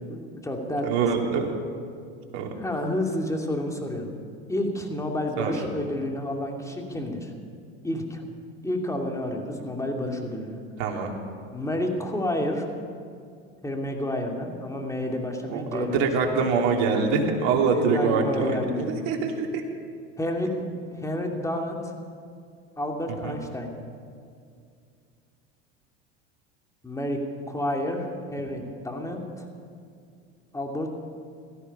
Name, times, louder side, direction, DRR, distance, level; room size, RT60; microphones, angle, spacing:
voice 1, 0.1-1.1 2.6-4.1 4.5-7.3 7.8-8.3 8.6-10.6 11.5-12.7 13.6-16.1 17.7-18.9 20.2-21.9 22.8-23.7 26.8-29.5 30.5-30.9, left 1 dB, 10° left, 1 dB, 2.7 m, -30 dB
voice 2, 0.8-1.5 2.3-2.5 5.4-5.5 10.8-11.1 15.5-18.6 19.0-19.6 23.2-23.3, right 5 dB, 60° right, 1 dB, 2.7 m, -24 dB
17.0 x 14.0 x 5.5 m, 2.3 s
hypercardioid pair, 85°, 32 cm